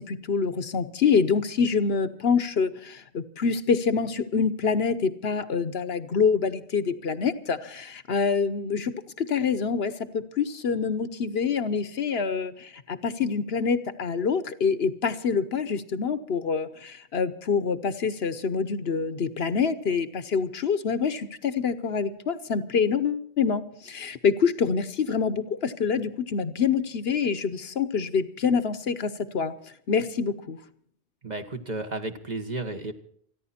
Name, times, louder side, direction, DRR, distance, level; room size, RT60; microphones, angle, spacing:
voice 1, 0.0-29.5 29.9-30.6, left 5 dB, 65° left, 12 dB, 1.2 m, -26 dB
voice 2, 31.2-32.9, right 2 dB, 40° right, 6 dB, 1.6 m, -33 dB
28.0 x 10.5 x 4.3 m, 0.63 s
omnidirectional pair, 1.1 m